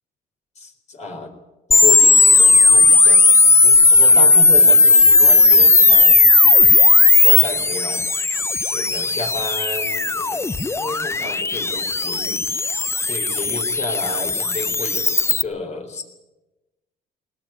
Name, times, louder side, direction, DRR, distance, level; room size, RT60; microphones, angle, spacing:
voice 1, 0.6-1.3 1.7-3.3 3.6-6.8 7.2-8.1 8.7-12.8 13.0-16.0, left 3 dB, 40° left, 5 dB, 4.2 m, -32 dB
sound 1, 1.7-15.4, left 3 dB, 15° left, 0.7 m, -14 dB
20.5 x 18.5 x 9.0 m, 1.1 s
cardioid pair, 110°, 17 cm